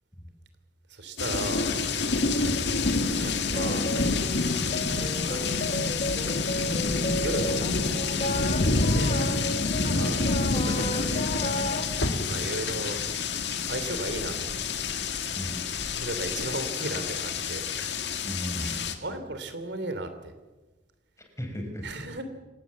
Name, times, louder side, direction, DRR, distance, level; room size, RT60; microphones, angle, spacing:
voice 1, 0.9-1.7 3.2-3.9 5.3-5.9 7.2-7.6 8.9-9.1 9.9-10.3 10.5-11.2 12.2-13.0 13.7-14.5 15.9-17.6 18.5-20.3 21.8-22.2, right 2 dB, 70° right, 9 dB, 3.1 m, -35 dB
sound 1, 1.2-18.9, left 4 dB, 70° left, 2.0 m, -28 dB
sound 2, 3.5-11.9, left 1 dB, 40° left, 1.2 m, -34 dB
voice 2, 15.3-15.7 18.3-18.9 21.4-22.0, equal, 15° left, 4 dB, 4.7 m, -36 dB
27.0 x 18.0 x 7.5 m, 1.2 s
head